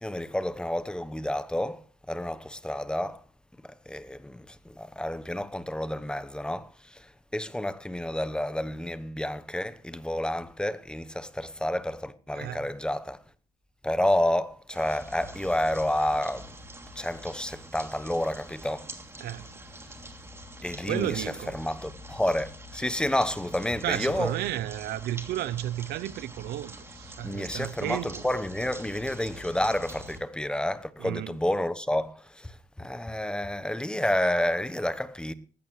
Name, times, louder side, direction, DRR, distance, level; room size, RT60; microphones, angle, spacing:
voice 1, 0.0-3.2 3.6-13.2 13.8-16.6 16.9-18.9 20.6-21.2 21.5-24.3 27.2-35.3, left 1 dB, 5° left, 1.0 m, -30 dB
voice 2, 12.3-12.7 19.2-19.5 20.8-21.6 23.8-28.2 31.0-31.4, right 14 dB, 75° right, 0.8 m, -33 dB
sound 1, 14.7-30.2, equal, 15° right, 2.9 m, -45 dB
18.5 x 15.5 x 3.2 m
cardioid pair, 110°, 17 cm